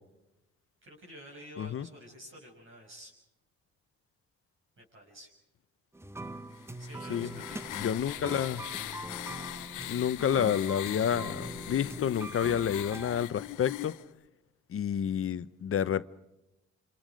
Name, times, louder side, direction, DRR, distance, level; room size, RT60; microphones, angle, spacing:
voice 1, 0.8-3.1 4.8-5.3 6.8-8.4, equal, 40° right, 6.4 m, -50 dB
sound 1, 5.9-13.2, right 1 dB, 10° right, 0.9 m, -42 dB
sound 2, 6.5-14.0, left 16 dB, 80° left, 0.7 m, -41 dB
voice 2, 7.8-8.6 9.9-13.9 14.7-16.1, left 9 dB, 45° left, 0.8 m, -29 dB
27.0 x 26.5 x 5.2 m
cardioid pair, 90°, 30 cm